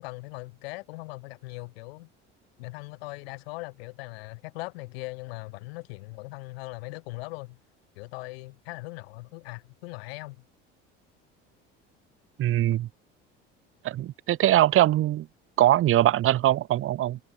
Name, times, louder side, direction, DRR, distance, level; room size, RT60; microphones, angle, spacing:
voice 1, 0.0-2.1 2.6-7.6 7.9-10.4, left 24 dB, 85° left, 4.9 m, -40 dB
voice 2, 12.4-12.9 13.8-15.3 15.6-17.2, right 13 dB, 45° right, 0.8 m, -22 dB
supercardioid pair, 90°, 30 cm